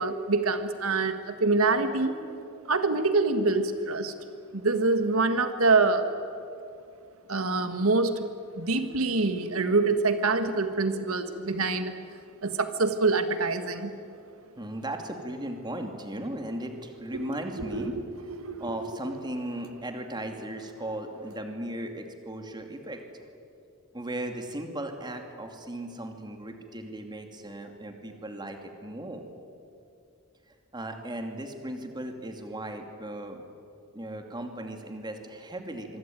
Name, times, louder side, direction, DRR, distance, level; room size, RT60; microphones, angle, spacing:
voice 1, 0.0-2.2 2.7-4.1 4.5-6.1 7.3-8.3 8.5-11.9 12.4-13.9 17.7-17.9 18.4-18.8, right 3 dB, 85° right, 9 dB, 1.7 m, -25 dB
voice 2, 14.6-18.0 18.6-23.0 23.9-29.2 30.7-33.4 33.9-36.0, right 1 dB, 20° right, 5 dB, 2.6 m, -37 dB
25.0 x 24.0 x 9.3 m, 2.5 s
head